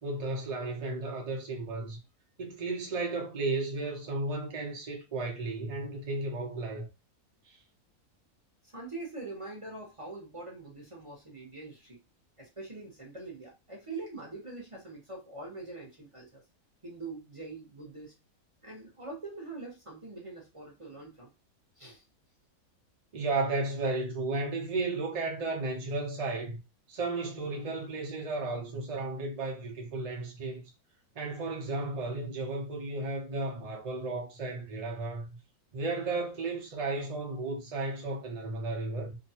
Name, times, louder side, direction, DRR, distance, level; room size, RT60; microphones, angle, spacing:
voice 1, 0.0-2.0 2.4-6.9 7.5-7.6 23.1-26.6 26.9-30.6 31.2-35.3 35.7-39.2, right 3 dB, 80° right, 0.3 m, -34 dB
voice 2, 8.6-12.0 12.4-16.4 16.8-18.1 18.6-21.3 21.8-22.0, right 3 dB, 30° right, 0.7 m, -43 dB
2.7 x 2.1 x 2.8 m
omnidirectional pair, 1.6 m